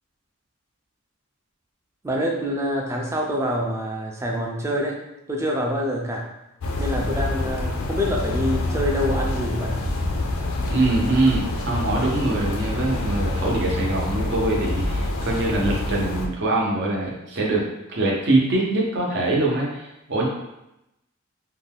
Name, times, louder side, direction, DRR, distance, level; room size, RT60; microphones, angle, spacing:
voice 1, 2.0-5.0 5.3-6.3 6.8-9.8, equal, 15° right, -1 dB, 0.4 m, -26 dB
sound 1, 6.6-16.3, left 1 dB, 80° left, 0.4 m, -26 dB
voice 2, 10.7-17.6 17.9-20.3, right 2 dB, 55° right, -3 dB, 0.7 m, -23 dB
2.6 x 2.2 x 3.4 m, 0.89 s
head